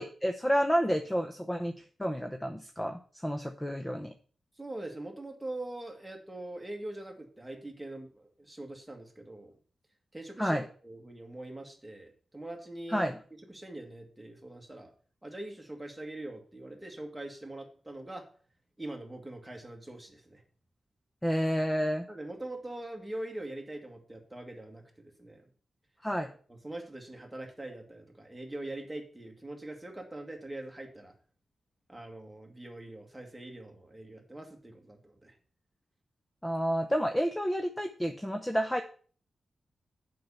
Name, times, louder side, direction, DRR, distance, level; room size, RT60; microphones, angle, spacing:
voice 1, 0.0-1.7 2.0-4.1 10.4-10.6 12.9-13.2 21.2-22.1 26.0-26.3 36.4-38.8, equal, 10° left, 5 dB, 0.7 m, -30 dB
voice 2, 4.6-9.5 10.1-13.1 13.5-14.9 15.2-18.3 18.8-20.4 22.1-25.5 26.6-31.1 31.9-35.3, right 1 dB, 5° right, 2 dB, 1.9 m, -43 dB
7.5 x 5.5 x 7.0 m, 0.43 s
wide cardioid pair, 110°, 0 cm